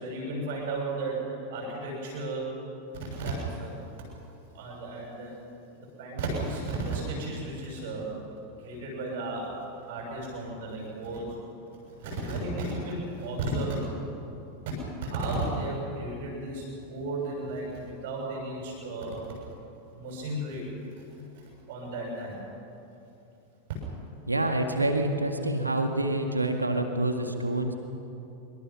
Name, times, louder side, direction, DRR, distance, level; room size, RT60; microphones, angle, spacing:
voice 1, 0.0-2.5 2.9-3.7 4.5-5.3 6.0-8.1 8.6-9.5 9.8-11.3 12.0-13.8 15.0-19.2 19.9-21.0 21.3-22.4 23.7-23.8, right 2 dB, 55° right, -2 dB, 6.7 m, -34 dB
voice 2, 24.3-27.7, right 1 dB, 85° right, 5 dB, 1.8 m, -27 dB
25.0 x 24.0 x 6.0 m, 2.8 s
figure-of-eight pair, 90°, 0 cm